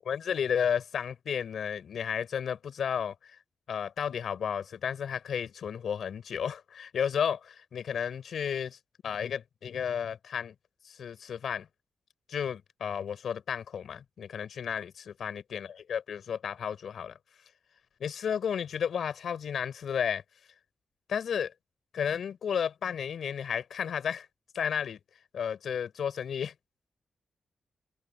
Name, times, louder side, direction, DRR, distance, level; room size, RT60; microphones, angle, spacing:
voice 1, 0.1-3.4 3.7-8.8 9.0-10.5 10.8-11.7 12.3-17.2 18.0-20.2 21.1-21.5 21.9-24.3 24.5-25.0 25.3-26.5, left 7 dB, 70° left, 5.1 m, -32 dB
open air
wide cardioid pair, 165°, 0 cm